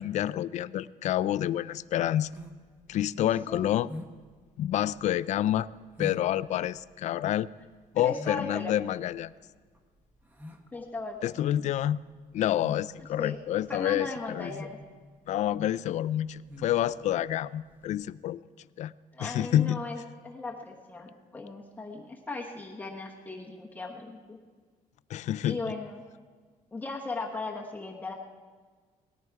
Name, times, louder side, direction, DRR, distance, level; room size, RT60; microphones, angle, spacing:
voice 1, 0.0-2.3 2.9-3.9 4.6-5.7 6.0-7.5 7.9-9.3 11.2-12.0 12.3-14.5 15.3-18.4 18.8-18.9 19.2-19.8 25.1-25.6, left 12 dB, 55° left, 17 dB, 0.4 m, -28 dB
sound 1, 1.9-18.1, left 1 dB, 10° right, 1.0 m, -47 dB
voice 2, 3.2-3.7 8.0-8.7 10.7-11.4 13.2-13.4 13.7-14.8 19.1-24.4 25.4-26.0 26.7-28.1, left 3 dB, 10° left, 0 dB, 1.1 m, -38 dB
18.5 x 14.0 x 4.7 m, 1.5 s
cardioid pair, 170°, 14 cm